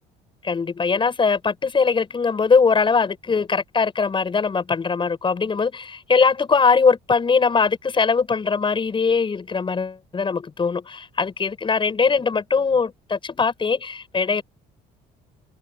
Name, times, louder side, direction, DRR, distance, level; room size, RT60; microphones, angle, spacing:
voice 1, 0.4-14.4, left 5 dB, 30° left, 7.3 m, -21 dB
open air
cardioid pair, 110°, 17 cm